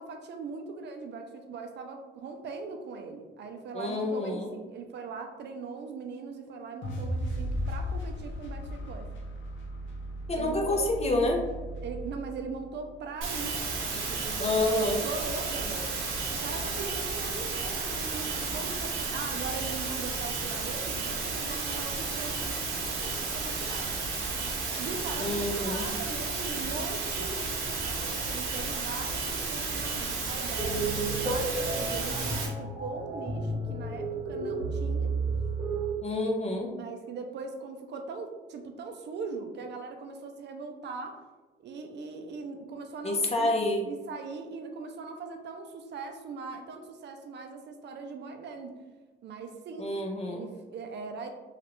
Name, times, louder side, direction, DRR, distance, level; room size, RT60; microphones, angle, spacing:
voice 1, 0.0-9.1 10.4-10.8 11.8-15.9 16.4-23.9 24.8-35.1 36.7-41.2 41.6-43.6 43.9-48.7 49.2-49.9 50.2-51.3, right 4 dB, 60° right, 5 dB, 0.5 m, -40 dB
voice 2, 3.7-4.5 10.3-11.4 14.4-15.0 25.2-25.9 36.0-36.7 43.0-43.9 49.8-50.5, left 2 dB, 30° left, 1 dB, 0.6 m, -28 dB
sound 1, 6.8-13.0, equal, 75° left, 0.6 m, -36 dB
sound 2, 13.2-32.5, right 4 dB, 90° right, 0.9 m, -33 dB
sound 3, 30.6-35.9, right 3 dB, 10° right, 1.1 m, -32 dB
3.1 x 2.4 x 3.0 m, 1.3 s
cardioid pair, 90°, 20 cm